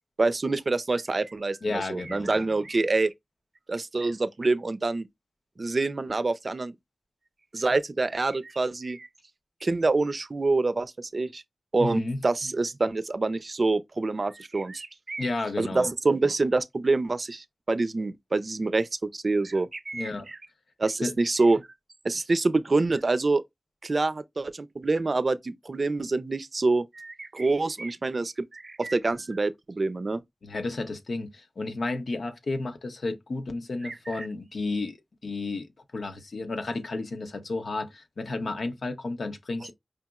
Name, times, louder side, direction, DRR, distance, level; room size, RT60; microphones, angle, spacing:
voice 1, 0.2-3.1 3.7-5.1 5.6-6.7 7.5-9.1 9.6-11.4 11.7-15.3 15.6-20.4 20.8-21.7 22.0-23.4 23.8-30.2 33.8-34.3, right 3 dB, 60° right, 0.4 m, -26 dB
voice 2, 1.6-2.4 11.8-12.2 15.2-15.9 19.9-20.3 21.0-21.1 30.4-35.0 35.2-35.7 35.9-39.7, left 3 dB, 85° left, 0.7 m, -32 dB
4.9 x 2.9 x 2.3 m
cardioid pair, 45°, 0 cm